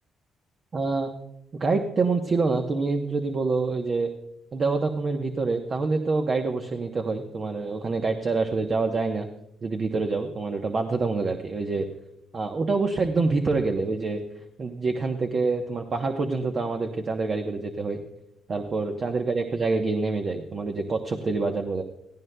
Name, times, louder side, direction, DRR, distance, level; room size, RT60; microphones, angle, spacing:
voice 1, 0.7-1.1 1.5-4.1 4.5-9.3 9.6-11.9 12.3-14.2 14.6-18.0 18.5-21.8, right 3 dB, 45° right, 5 dB, 0.8 m, -26 dB
17.5 x 14.5 x 2.2 m, 0.86 s
cardioid pair, 90°, 0 cm